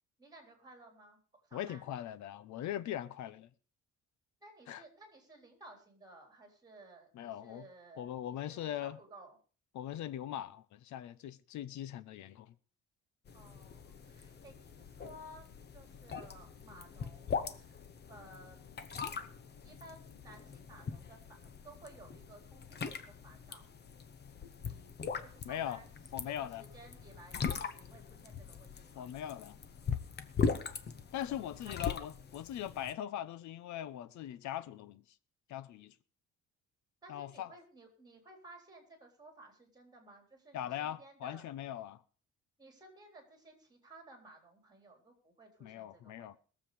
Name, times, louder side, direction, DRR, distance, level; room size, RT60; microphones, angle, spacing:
voice 1, 0.2-1.9 4.4-8.1 8.5-9.4 13.3-15.4 15.7-17.8 18.1-18.6 19.0-19.2 19.6-23.7 24.5-25.9 26.4-29.1 30.9-31.9 37.0-41.4 42.6-46.3, right 2 dB, 15° right, 3.8 m, -56 dB
voice 2, 1.5-3.5 4.7-4.8 7.1-7.7 8.0-9.0 9.7-12.5 25.4-25.8 26.1-26.6 29.0-29.6 31.1-35.0 35.5-35.9 37.1-37.5 40.5-42.0 45.6-46.4, left 11 dB, 70° left, 0.8 m, -40 dB
sound 1, 13.3-32.9, left 5 dB, 35° left, 1.0 m, -41 dB
21.0 x 7.5 x 5.0 m
cardioid pair, 165°, 30 cm